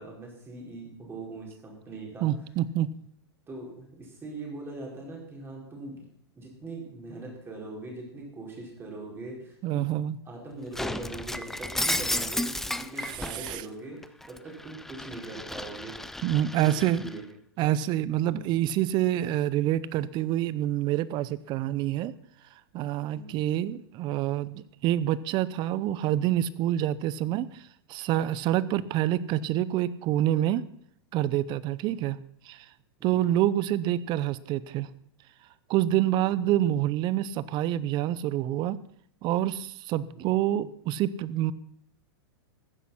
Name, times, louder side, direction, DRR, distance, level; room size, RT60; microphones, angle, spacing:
voice 1, 0.0-2.3 3.5-6.0 6.4-9.9 10.3-15.9 16.6-17.2 17.6-17.7 18.2-18.6 23.1-23.3 28.6-28.8 33.0-33.3 36.1-36.3 40.1-40.3, right 2 dB, 15° right, -1 dB, 4.8 m, -41 dB
voice 2, 2.2-2.9 9.6-10.2 13.0-13.6 16.2-17.0 17.6-22.1 22.7-30.6 31.1-32.7 33.0-34.9 35.7-38.8 39.2-41.5, right 12 dB, 35° right, 18 dB, 0.7 m, -27 dB
Shatter, 10.7-13.6 14.0-17.2, left 1 dB, 5° left, 0.4 m, -33 dB
15.0 x 9.6 x 5.7 m, 0.66 s
hypercardioid pair, 135°, 14 cm